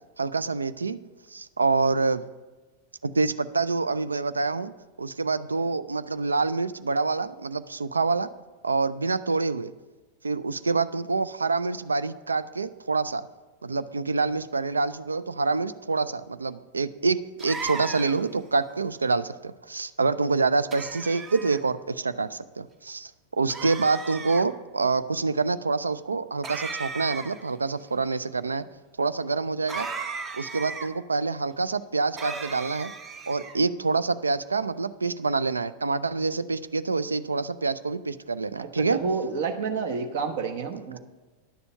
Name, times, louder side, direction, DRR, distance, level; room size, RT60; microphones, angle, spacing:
voice 1, 0.2-1.0 1.3-2.2 3.0-4.7 5.0-8.3 8.6-9.7 10.2-13.2 13.6-23.1 23.4-28.6 29.0-29.9 30.3-32.9 33.3-39.0, right 4 dB, 75° right, 15 dB, 0.4 m, -26 dB
sound 1, 17.4-18.3 20.7-21.6 23.5-24.4 26.4-27.5 29.7-30.9 32.2-33.6, right 4 dB, 25° right, 0.8 m, -36 dB
voice 2, 38.6-41.0, right 5 dB, 55° right, 7 dB, 0.9 m, -29 dB
10.5 x 6.9 x 5.5 m, 1.2 s
figure-of-eight pair, 90°, 0 cm